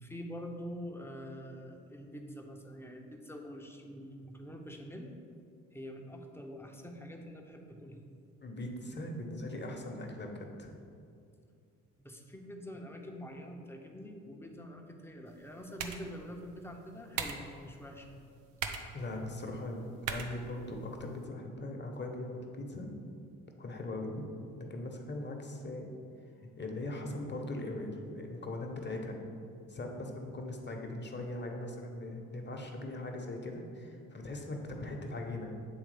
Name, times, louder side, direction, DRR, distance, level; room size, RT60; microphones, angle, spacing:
voice 1, 0.0-8.0 12.0-18.2, equal, 5° left, 2 dB, 0.9 m, -46 dB
voice 2, 8.4-10.7 18.9-22.9 23.6-24.3 24.6-25.9 26.4-29.2 29.7-35.5, left 1 dB, 30° left, 2 dB, 1.2 m, -40 dB
sound 1, 15.3-21.3, right 6 dB, 80° right, 0.6 m, -43 dB
8.1 x 3.5 x 5.0 m, 2.4 s
hypercardioid pair, 55°, 38 cm